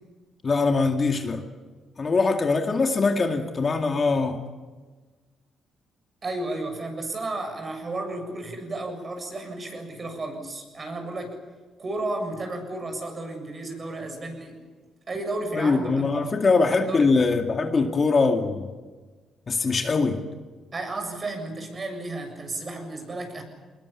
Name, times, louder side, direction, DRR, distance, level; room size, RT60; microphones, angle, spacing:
voice 1, 0.4-1.4 2.0-4.4 15.5-18.7 19.5-20.2, left 4 dB, 35° left, 4 dB, 2.2 m, -22 dB
voice 2, 6.2-11.4 11.8-14.6 15.1-16.4 16.7-17.1 20.7-23.4, right 2 dB, 35° right, 5 dB, 7.4 m, -33 dB
24.0 x 21.0 x 8.6 m, 1.3 s
cardioid pair, 90°, 0 cm